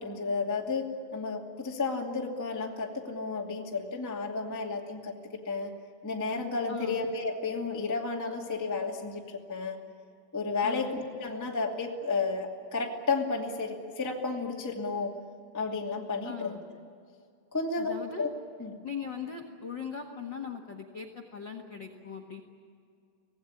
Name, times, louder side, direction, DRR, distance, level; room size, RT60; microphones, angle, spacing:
voice 1, 0.0-5.1 5.4-5.7 6.0-9.7 10.3-15.1 15.5-16.6 17.5-17.9 18.2-18.3 18.6-18.7, left 4 dB, 10° left, -1 dB, 1.3 m, -32 dB
voice 2, 6.7-7.0 10.6-10.9 16.2-16.6 17.8-18.3 18.8-22.4, left 6 dB, 65° left, 5 dB, 1.1 m, -39 dB
25.5 x 18.0 x 10.0 m, 2.3 s
omnidirectional pair, 5.0 m